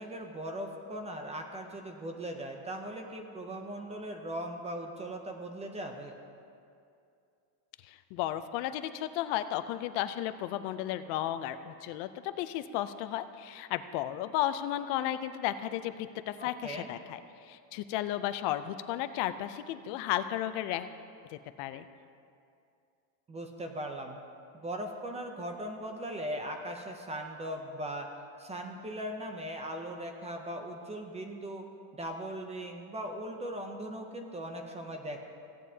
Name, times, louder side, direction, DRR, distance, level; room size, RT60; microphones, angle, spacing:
voice 1, 0.0-6.1 16.4-16.9 23.3-24.2 24.6-28.1 28.4-31.7 31.9-35.2, right 1 dB, 15° right, 4 dB, 0.5 m, -39 dB
voice 2, 7.8-20.9 21.3-21.9, left 12 dB, 65° left, 11 dB, 0.6 m, -34 dB
16.0 x 9.8 x 2.7 m, 2.5 s
cardioid pair, 155°, 46 cm